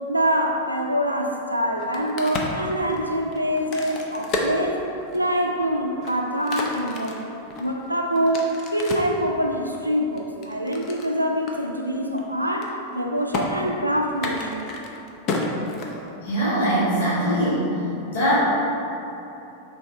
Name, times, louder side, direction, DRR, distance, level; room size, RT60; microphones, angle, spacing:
voice 1, 0.1-4.9 5.1-7.2 7.6-14.6, equal, 85° right, 1 dB, 0.3 m, -25 dB
Crack, 1.7-5.4 5.9-9.2 9.7-11.1 11.5-11.6 11.9-12.2 12.5-13.0 13.3-13.4 14.1-16.3, left 3 dB, 40° left, 0.4 m, -31 dB
voice 2, 16.2-17.7 18.1-18.3, equal, 60° left, -7 dB, 1.3 m, -22 dB
3.4 x 2.6 x 4.1 m, 3.0 s
figure-of-eight pair, 90°, 0 cm